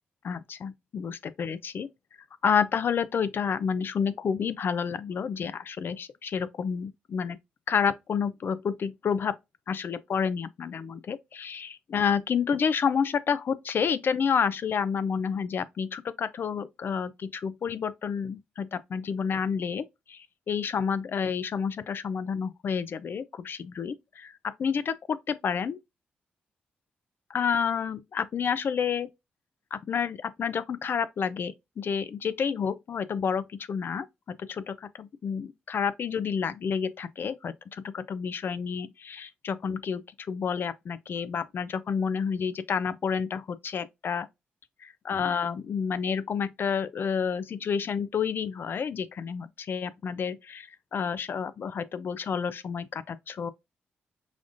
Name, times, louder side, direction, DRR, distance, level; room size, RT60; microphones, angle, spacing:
voice 1, 0.2-1.9 2.4-7.4 7.7-9.4 9.7-25.8 27.3-29.1 29.7-44.3 44.8-53.5, left 6 dB, 60° left, 0.4 m, -30 dB
5.0 x 2.4 x 2.5 m
supercardioid pair, 55°, 4 cm